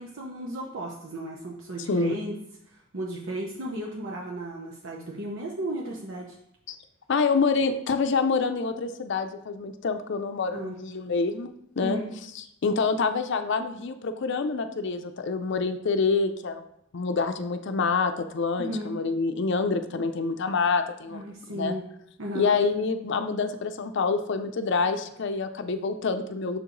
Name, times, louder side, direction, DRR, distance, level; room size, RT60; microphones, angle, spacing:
voice 1, 0.0-2.3 2.7-6.4 10.5-10.7 11.8-12.1 18.6-18.9 21.1-21.8 22.2-22.5, right 1 dB, 75° right, -2 dB, 0.9 m, -34 dB
voice 2, 7.1-12.0 12.6-16.6 16.9-21.2 21.5-21.8 22.3-26.6, left 4 dB, 65° left, 7 dB, 0.5 m, -27 dB
6.4 x 4.7 x 3.8 m, 0.74 s
head